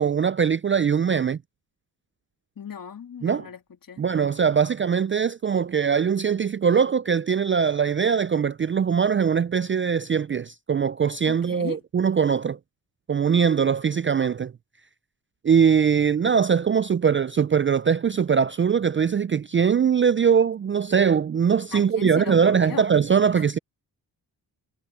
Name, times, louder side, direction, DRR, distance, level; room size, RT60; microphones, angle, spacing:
voice 1, 0.0-1.4 3.2-3.5 4.0-12.6 13.1-14.5 15.4-23.6, right 7 dB, 30° right, 0.3 m, -21 dB
voice 2, 2.6-4.0 4.4-4.6 11.3-11.8 21.7-22.9 23.3-23.5, left 7 dB, 50° left, 1.8 m, -38 dB
cardioid pair, 75°, 43 cm